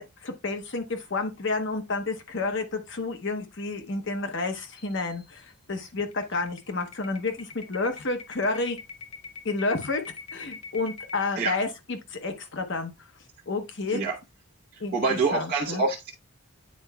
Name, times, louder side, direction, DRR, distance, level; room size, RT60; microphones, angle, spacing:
voice 1, 0.0-8.8 9.4-10.0 10.3-12.9 13.5-14.0 14.8-14.9 15.3-15.8, left 3 dB, 55° left, 0.8 m, -30 dB
sound 1, 4.8-5.2 5.5-5.6 6.0-11.3, left 5 dB, 75° left, 1.1 m, -41 dB
voice 2, 14.7-16.1, right 4 dB, 40° right, 0.9 m, -26 dB
9.5 x 4.5 x 2.3 m
head